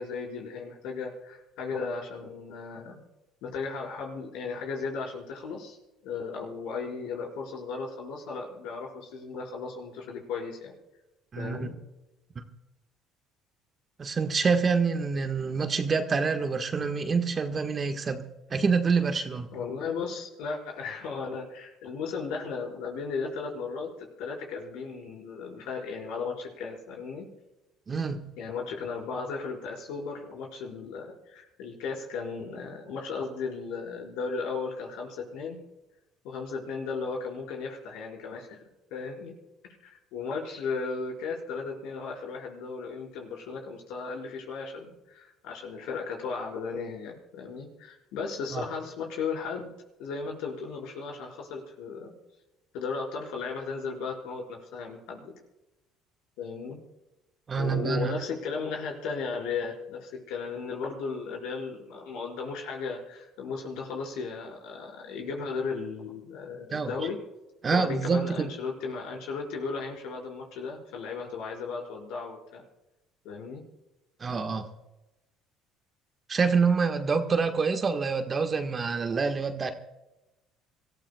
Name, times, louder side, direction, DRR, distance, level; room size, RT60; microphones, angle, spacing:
voice 1, 0.0-3.0 3.4-5.8 6.0-10.7 11.4-11.7 19.5-27.3 28.4-35.6 36.2-38.6 38.9-39.3 39.6-49.7 50.0-52.1 52.7-55.3 56.4-56.8 57.5-67.2 67.7-72.6 73.2-73.6, left 4 dB, 75° left, -1 dB, 4.9 m, -35 dB
voice 2, 11.3-11.7 14.0-18.2 18.5-19.5 27.9-28.3 48.5-48.6 57.5-58.1 66.7-66.9 67.6-68.5 74.2-74.7 76.3-79.7, right 5 dB, 35° right, 6 dB, 1.5 m, -26 dB
26.0 x 14.5 x 2.3 m, 0.98 s
supercardioid pair, 75°, 0 cm